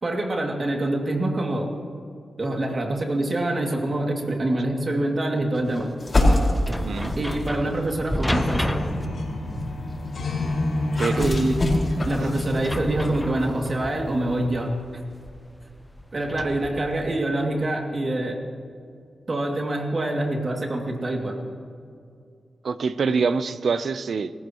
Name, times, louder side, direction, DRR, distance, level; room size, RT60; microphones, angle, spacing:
voice 1, 0.0-1.7 2.4-5.9 7.2-8.8 11.2-11.6 12.1-14.7 16.1-18.4 19.3-21.4, right 1 dB, 45° right, 1 dB, 2.6 m, -25 dB
sound 1, 5.5-17.2, left 1 dB, 10° left, 1.0 m, -33 dB
sound 2, 6.0-7.6 8.2-14.4, left 1 dB, 40° left, 5.1 m, -28 dB
voice 2, 6.7-7.2 11.0-11.4 22.6-24.3, right 5 dB, 75° right, 13 dB, 0.7 m, -25 dB
sound 3, 7.0-7.4 7.8-7.9 8.3-12.8, left 2 dB, 75° left, 4.0 m, -29 dB
30.0 x 15.0 x 3.1 m, 2.4 s
cardioid pair, 65°, 0 cm